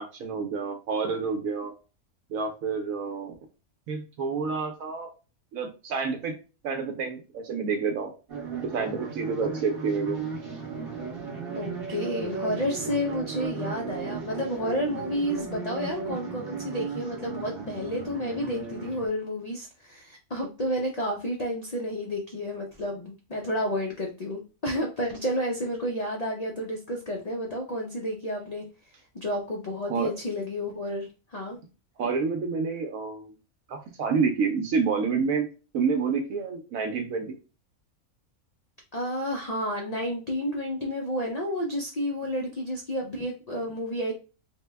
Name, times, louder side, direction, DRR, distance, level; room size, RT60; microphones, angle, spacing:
voice 1, 0.0-1.7 2.3-3.3 3.9-5.1 5.5-6.3 6.6-8.1 8.6-10.3 29.9-30.1 32.0-33.3 33.7-35.5 35.7-37.3, right 5 dB, 75° right, 4 dB, 1.0 m, -28 dB
sound 1, 8.3-19.1, right 5 dB, 45° right, 1.1 m, -35 dB
voice 2, 11.5-28.6 29.1-31.6 38.9-44.1, equal, 70° left, 0 dB, 0.3 m, -31 dB
3.4 x 2.1 x 3.3 m, 0.32 s
omnidirectional pair, 1.5 m